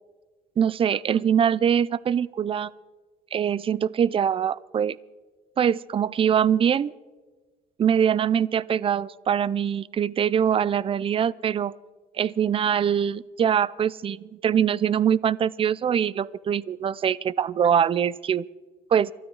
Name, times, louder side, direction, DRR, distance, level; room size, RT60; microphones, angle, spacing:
voice 1, 0.6-2.7 3.3-5.0 5.6-6.9 7.8-11.7 12.1-18.4 18.9-19.1, right 8 dB, 35° right, 22 dB, 0.4 m, -23 dB
28.5 x 12.5 x 3.9 m, 1.3 s
cardioid pair, 110°, 17 cm